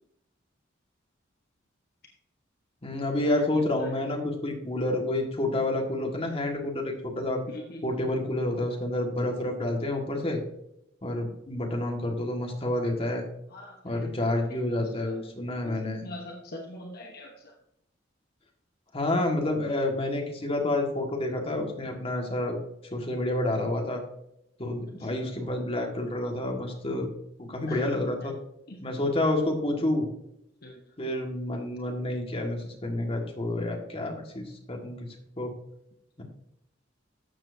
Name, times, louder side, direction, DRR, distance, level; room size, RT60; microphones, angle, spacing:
voice 1, 2.8-7.4 7.8-10.4 11.0-13.2 13.8-16.0 18.9-22.6 22.9-24.0 24.6-27.1 27.5-28.3 28.8-30.1 31.0-35.1 35.4-35.5 36.2-36.3, left 1 dB, 30° left, 1 dB, 1.8 m, -29 dB
voice 2, 3.3-4.0 7.5-7.9 13.5-14.4 14.7-15.2 15.6-17.6 25.0-25.2 27.7-28.1 28.7-28.8 30.6-30.9, left 1 dB, 50° left, 1 dB, 1.1 m, -43 dB
13.0 x 7.4 x 2.7 m, 0.80 s
head